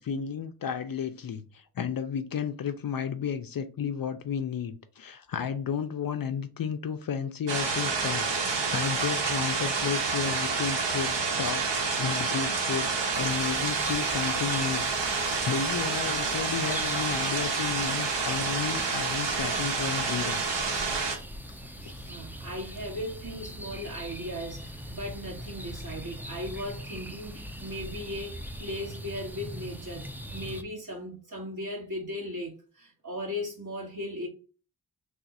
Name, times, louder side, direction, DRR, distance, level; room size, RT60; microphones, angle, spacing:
voice 1, 0.0-11.6 12.0-12.9 13.2-20.4 21.8-22.0, left 7 dB, 55° left, 0.5 m, -33 dB
sound 1, 7.5-21.2, right 4 dB, 70° right, 1.0 m, -28 dB
sound 2, 13.1-30.6, equal, 5° right, 0.3 m, -41 dB
voice 2, 22.1-34.3, left 1 dB, 45° right, 1.9 m, -37 dB
3.3 x 2.4 x 4.1 m
wide cardioid pair, 100°, 43 cm